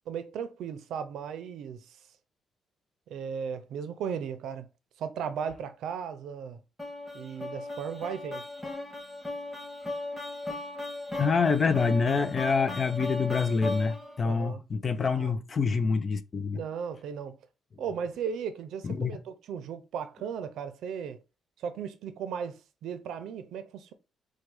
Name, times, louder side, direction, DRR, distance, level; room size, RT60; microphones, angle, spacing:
voice 1, 0.1-2.0 3.1-4.7 5.0-6.6 7.1-8.4 14.2-14.6 15.1-15.3 16.5-17.4 17.8-21.2 21.6-23.9, right 7 dB, 80° right, 0.6 m, -36 dB
sound 1, 6.8-14.2, left 2 dB, 10° left, 1.9 m, -36 dB
voice 2, 11.2-16.6 18.8-19.1, left 5 dB, 40° left, 0.6 m, -26 dB
4.5 x 2.3 x 4.8 m
cardioid pair, 90°, 0 cm